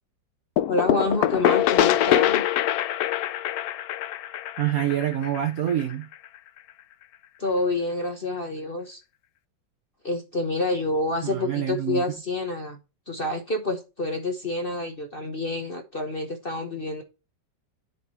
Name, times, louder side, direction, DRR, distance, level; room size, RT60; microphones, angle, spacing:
sound 1, 0.6-6.1, left 12 dB, 80° left, 0.8 m, -24 dB
voice 1, 0.7-2.4 7.4-9.0 10.0-12.8 13.1-17.0, left 2 dB, 40° left, 0.9 m, -28 dB
voice 2, 4.6-6.1 11.2-12.0, right 11 dB, 65° right, 0.9 m, -26 dB
10.5 x 4.2 x 4.3 m
omnidirectional pair, 2.1 m